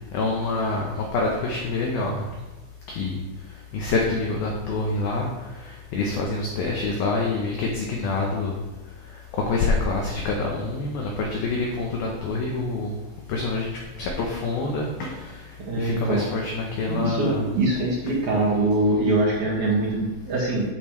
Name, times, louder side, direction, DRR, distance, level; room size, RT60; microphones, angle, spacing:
voice 1, 0.1-2.3 2.9-3.2 3.7-8.5 9.3-13.0 13.3-17.5 18.1-18.2, left 3 dB, 80° left, 0 dB, 2.2 m, -26 dB
voice 2, 15.7-16.2 16.9-20.7, right 2 dB, 50° right, -6 dB, 2.6 m, -23 dB
12.5 x 7.4 x 3.3 m, 1.1 s
omnidirectional pair, 5.7 m